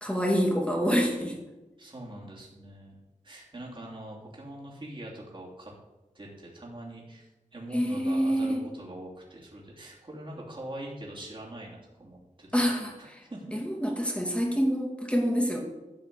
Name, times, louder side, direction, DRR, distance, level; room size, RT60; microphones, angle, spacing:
voice 1, 0.0-1.3 7.7-8.6 12.5-13.2 13.5-15.6, equal, 10° left, 0 dB, 2.6 m, -27 dB
voice 2, 1.8-3.0 3.2-5.7 6.1-12.7 13.0-13.5, right 1 dB, 40° right, -4 dB, 2.9 m, -43 dB
12.5 x 5.0 x 8.3 m, 1.1 s
wide cardioid pair, 80°, 13 cm